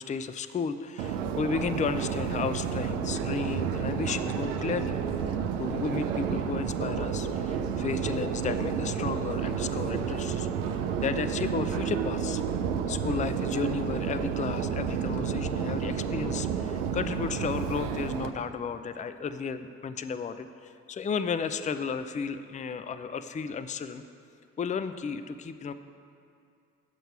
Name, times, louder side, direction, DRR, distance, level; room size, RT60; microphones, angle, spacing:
voice 1, 0.0-5.0 5.3-12.4 12.9-24.0 24.6-25.7, left 5 dB, 20° left, 11 dB, 0.4 m, -33 dB
Subway metro underground, 1.0-18.3, right 7 dB, 85° right, 0.5 m, -30 dB
9.1 x 7.9 x 4.6 m, 2.4 s
hypercardioid pair, 45°, 37 cm